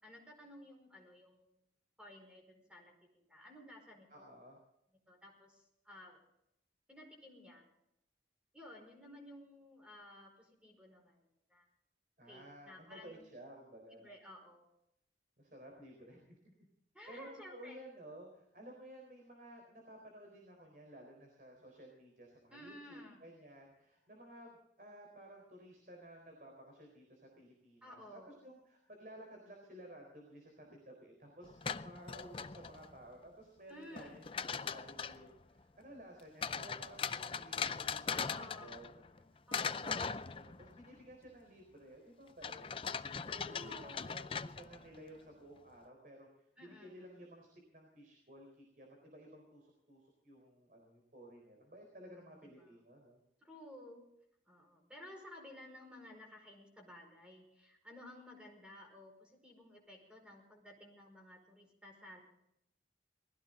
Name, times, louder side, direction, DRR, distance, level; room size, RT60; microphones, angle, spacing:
voice 1, 0.0-1.5 2.0-4.4 5.1-6.2 6.9-7.7 8.5-11.7 12.3-13.2 13.9-14.7 16.9-17.8 22.5-23.2 27.8-28.4 33.7-34.2 38.1-38.8 39.5-39.9 43.5-44.0 46.6-47.1 52.1-52.7 53.4-54.1 54.5-62.2, left 1 dB, 5° right, 1 dB, 5.1 m, -55 dB
voice 2, 4.1-4.6 12.2-14.1 15.4-16.7 17.1-38.9 39.1-39.4 39.8-42.6 43.3-53.2, right 1 dB, 50° right, 1 dB, 4.1 m, -55 dB
sound 1, 31.4-33.0 34.0-35.3 36.4-39.2 39.5-40.9 42.4-45.0, left 6 dB, 30° left, 0.5 m, -40 dB
20.5 x 16.0 x 3.9 m, 0.77 s
head